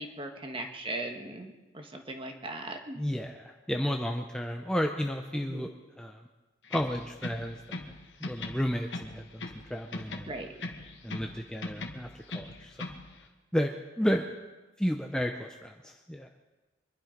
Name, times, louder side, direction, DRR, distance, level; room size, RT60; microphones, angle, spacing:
voice 1, 0.0-3.0 5.3-5.6 10.2-10.5, right 2 dB, 25° right, 4 dB, 1.4 m, -39 dB
voice 2, 3.0-5.7 6.0-6.2 6.7-7.9 8.2-10.3 11.0-12.8 13.5-14.3 14.8-16.3, equal, 5° left, 3 dB, 0.6 m, -32 dB
sound 1, 6.6-8.0 8.2-9.7 9.9-11.3 11.6-13.0, left 2 dB, 60° left, 1.6 m, -39 dB
24.5 x 11.5 x 5.2 m, 1.2 s
head